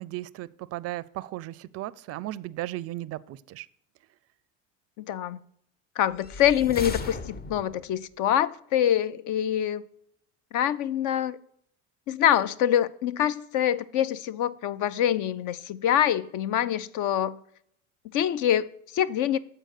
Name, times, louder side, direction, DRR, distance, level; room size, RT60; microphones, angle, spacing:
voice 1, 0.0-3.7, right 16 dB, 40° right, 0.4 m, -36 dB
voice 2, 5.0-5.4 6.0-9.8 10.5-11.4 12.1-17.4 18.1-19.4, left 10 dB, 55° left, 0.5 m, -25 dB
sound 1, 6.1-7.9, left 3 dB, 25° left, 0.7 m, -36 dB
7.6 x 4.5 x 6.6 m
hypercardioid pair, 85°, 38 cm